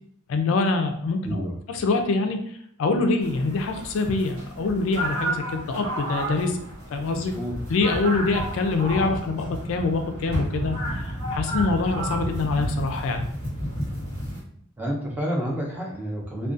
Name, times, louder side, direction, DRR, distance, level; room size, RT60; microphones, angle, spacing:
voice 1, 0.3-1.4 1.7-6.6 6.9-7.3 7.7-13.3, left 3 dB, 65° left, 5 dB, 0.3 m, -25 dB
voice 2, 1.2-1.5 7.2-7.5 14.8-16.5, equal, 10° right, -3 dB, 0.5 m, -29 dB
sound 1, 3.2-14.4, equal, 75° right, 1.2 m, -31 dB
2.3 x 2.2 x 2.5 m, 0.67 s
head